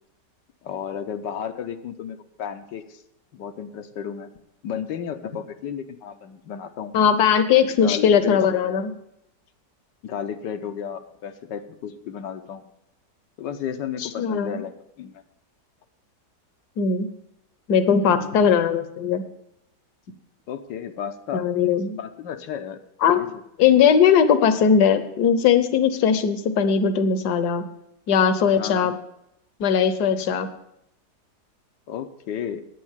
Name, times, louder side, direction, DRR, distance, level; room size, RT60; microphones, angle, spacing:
voice 1, 0.6-3.0 3.3-4.3 4.6-6.9 7.8-8.8 10.0-12.6 13.4-14.7 15.0-15.2 18.0-18.6 20.5-21.4 22.0-22.8 23.1-23.4 28.5-28.9 31.9-32.6, left 8 dB, 85° left, 8 dB, 1.5 m, -33 dB
voice 2, 6.9-8.9 14.0-14.7 16.8-17.1 17.7-19.2 21.3-22.0 23.0-23.2 23.6-27.7 28.1-28.9 29.6-30.5, left 7 dB, 70° left, 11 dB, 1.4 m, -19 dB
9.6 x 8.7 x 7.3 m, 0.80 s
omnidirectional pair, 1.9 m